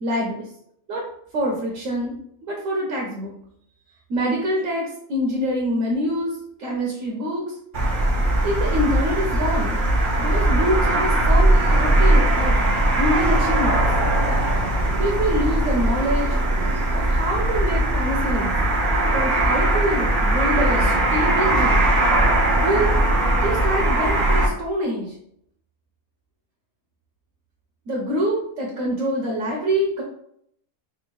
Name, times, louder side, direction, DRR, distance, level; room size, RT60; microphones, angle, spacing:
voice 1, 0.0-0.4 0.9-1.0 1.3-2.1 2.4-3.3 4.1-6.3 6.6-7.5 8.4-9.8 10.2-12.5 13.0-13.8 15.0-16.4 16.9-18.5 19.1-21.8 22.6-22.9 23.4-25.1 27.9-30.0, equal, 70° right, -2 dB, 1.1 m, -25 dB
sound 1, 7.7-24.5, right 1 dB, 50° right, 0.6 m, -20 dB
3.4 x 2.5 x 3.1 m, 0.71 s
omnidirectional pair, 1.5 m